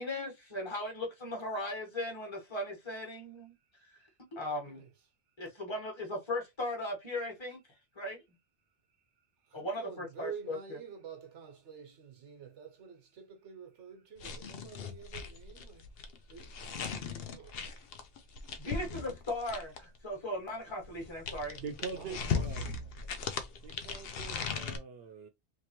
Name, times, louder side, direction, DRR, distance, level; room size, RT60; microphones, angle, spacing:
voice 1, 0.0-3.5 4.3-4.8 5.4-7.6 7.9-8.2 9.5-10.6 18.6-21.6, left 1 dB, 25° left, 1.2 m, -37 dB
voice 2, 4.5-4.9 9.4-15.9 16.3-16.8 17.2-17.9 18.4-18.5 18.9-19.1 22.0-22.8, right 7 dB, 85° right, 1.2 m, -49 dB
sound 1, 14.2-20.0 20.8-24.8, left 5 dB, 65° left, 0.8 m, -38 dB
voice 3, 21.6-22.8 23.6-25.3, right 5 dB, 65° right, 0.8 m, -44 dB
3.3 x 3.0 x 2.9 m
omnidirectional pair, 1.2 m